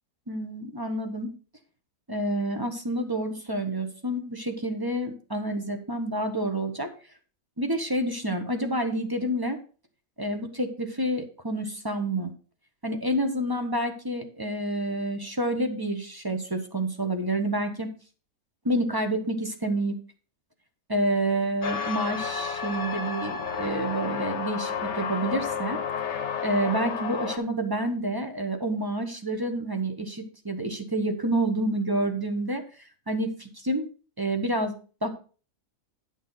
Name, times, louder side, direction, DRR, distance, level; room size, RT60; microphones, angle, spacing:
voice 1, 0.3-1.3 2.1-6.9 7.6-9.6 10.2-12.3 12.8-17.9 18.6-19.9 20.9-25.8 26.4-32.6 33.1-33.9 34.2-34.7 35.0-35.1, right 1 dB, 20° right, 6 dB, 0.8 m, -28 dB
sound 1, 21.6-27.4, left 6 dB, 55° left, 1.2 m, -31 dB
9.8 x 6.6 x 3.9 m, 0.37 s
omnidirectional pair, 1.6 m